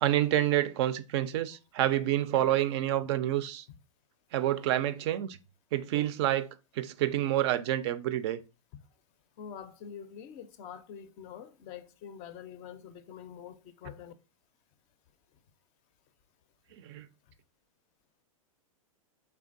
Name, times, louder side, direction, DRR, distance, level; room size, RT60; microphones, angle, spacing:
voice 1, 0.0-3.7 4.3-5.4 5.7-8.4 16.8-17.1, right 13 dB, 50° right, 0.4 m, -28 dB
voice 2, 9.4-14.1, left 8 dB, 40° left, 0.4 m, -45 dB
4.5 x 3.3 x 2.5 m
hypercardioid pair, 115°, 18 cm